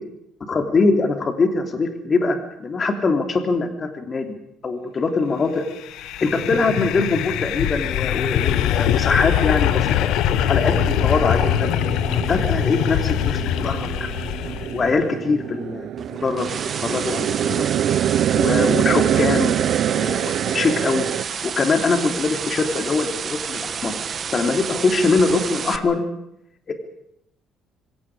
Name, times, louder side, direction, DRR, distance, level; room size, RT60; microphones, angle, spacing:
voice 1, 0.5-4.3 4.6-5.6 6.2-11.7 12.3-14.1 14.7-16.5 16.8-17.7 18.3-19.5 19.8-24.0 24.3-26.0 26.7-26.8, left 4 dB, 30° left, 6 dB, 3.4 m, -22 dB
sound 1, 5.8-14.9, left 11 dB, 75° left, 1.4 m, -22 dB
sound 2, 10.4-21.2, right 10 dB, 55° right, 0.9 m, -25 dB
sound 3, 16.0-25.8, right 7 dB, 35° right, 1.4 m, -30 dB
26.5 x 25.5 x 5.1 m, 0.78 s
cardioid pair, 155°, 0 cm